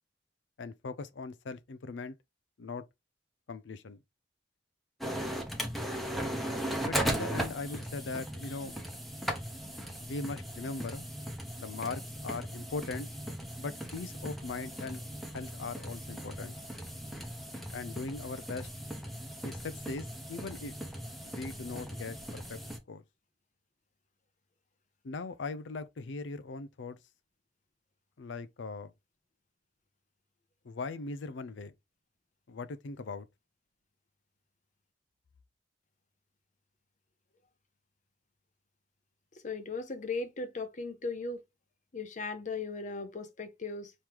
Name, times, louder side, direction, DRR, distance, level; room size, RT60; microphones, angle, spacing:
voice 1, 0.6-2.2 2.6-2.8 3.5-4.0 6.9-8.8 10.0-11.1 11.6-13.1 13.6-16.6 17.7-18.7 19.4-20.8 21.2-22.6 22.9-23.0 25.0-27.0 28.2-28.9 30.6-31.7 32.5-33.3, left 3 dB, 80° left, 0.5 m, -40 dB
sound 1, 5.0-22.8, right 1 dB, ahead, 0.8 m, -38 dB
voice 2, 39.4-41.4 41.9-43.9, left 3 dB, 45° left, 0.7 m, -37 dB
4.5 x 3.1 x 3.5 m
head